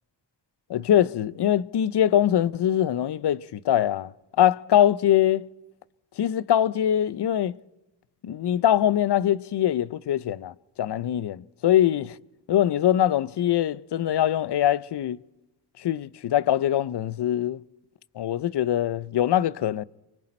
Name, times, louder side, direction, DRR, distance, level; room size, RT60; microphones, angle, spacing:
voice 1, 0.7-4.1 4.4-5.5 6.2-7.6 8.2-12.2 12.5-15.2 15.8-17.6 18.2-19.8, left 11 dB, 65° left, 0.6 m, -23 dB
28.5 x 25.0 x 4.3 m
wide cardioid pair, 125°, 44 cm